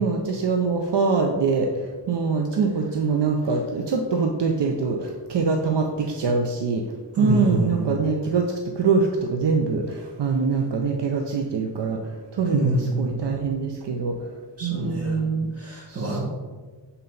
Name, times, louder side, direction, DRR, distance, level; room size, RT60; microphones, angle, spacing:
voice 1, 0.0-1.7 2.1-6.8 7.2-8.5 8.8-12.0 12.4-14.1 14.6-15.5 15.9-16.2, right 4 dB, 75° right, 2 dB, 0.7 m, -24 dB
voice 2, 7.1-7.9 12.5-13.2 14.6-15.2 15.6-16.2, right 1 dB, 35° right, -3 dB, 1.9 m, -26 dB
7.6 x 4.1 x 3.9 m, 1.4 s
wide cardioid pair, 100°, 43 cm